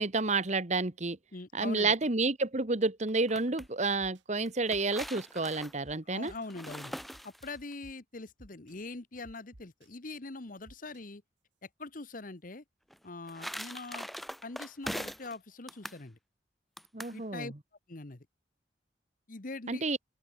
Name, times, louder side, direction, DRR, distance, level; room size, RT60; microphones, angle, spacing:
voice 1, 0.0-1.2 1.5-6.3 16.9-17.5 19.7-20.0, right 3 dB, 40° right, 1.4 m, -30 dB
voice 2, 1.3-2.0 6.0-6.9 7.2-11.2 11.8-12.6 13.0-14.1 14.4-16.2 17.1-17.5 17.9-18.3 19.3-19.8, left 3 dB, 50° left, 1.3 m, -43 dB
sound 1, 3.1-3.7 4.4-7.7 12.9-15.4 15.7-16.0 16.8-17.2, equal, ahead, 1.1 m, -42 dB
sound 2, 3.6-3.7 4.0-4.2 4.7-5.3 5.8-5.9 6.3-6.5 7.0-7.9 8.4-8.7 9.2-9.9 10.7-11.0, right 1 dB, 90° right, 2.4 m, -54 dB
open air
head